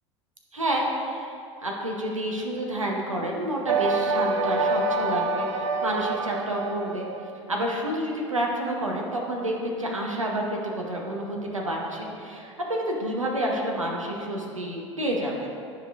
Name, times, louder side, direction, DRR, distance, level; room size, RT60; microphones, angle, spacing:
voice 1, 0.5-1.3 1.6-7.1 7.5-15.5, right 1 dB, 90° right, -1 dB, 0.8 m, -29 dB
sound 1, 3.7-7.3, right 3 dB, 70° right, 0.4 m, -26 dB
10.5 x 5.0 x 2.4 m, 2.4 s
figure-of-eight pair, 80°, 16 cm